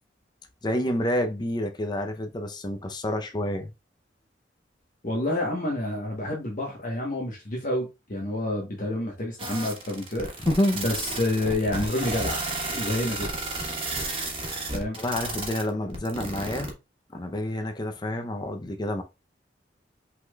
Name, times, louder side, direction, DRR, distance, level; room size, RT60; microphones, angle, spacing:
voice 1, 0.6-3.7 10.4-10.8 13.9-14.0 14.4-16.8 17.1-19.0, left 1 dB, 25° left, 0.7 m, -28 dB
voice 2, 5.0-10.3 10.7-12.4 12.7-13.3 14.7-15.0, left 1 dB, 50° left, 1.2 m, -28 dB
sound 1, 9.4-16.7, right 2 dB, 30° right, 1.4 m, -32 dB
5.8 x 3.8 x 2.4 m
head